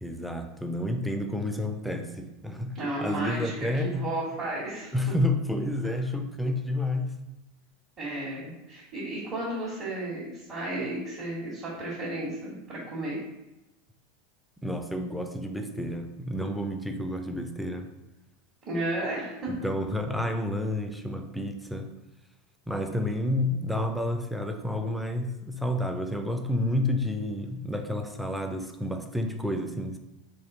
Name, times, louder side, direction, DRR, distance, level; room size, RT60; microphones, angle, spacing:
voice 1, 0.0-2.7 3.0-4.1 4.9-7.2 14.6-17.9 19.5-21.9 22.7-30.0, left 1 dB, ahead, 5 dB, 0.4 m, -30 dB
voice 2, 2.7-4.9 8.0-13.2 18.6-19.5, right 1 dB, 40° right, -8 dB, 1.3 m, -33 dB
3.4 x 2.5 x 3.9 m, 0.98 s
hypercardioid pair, 90°, 0 cm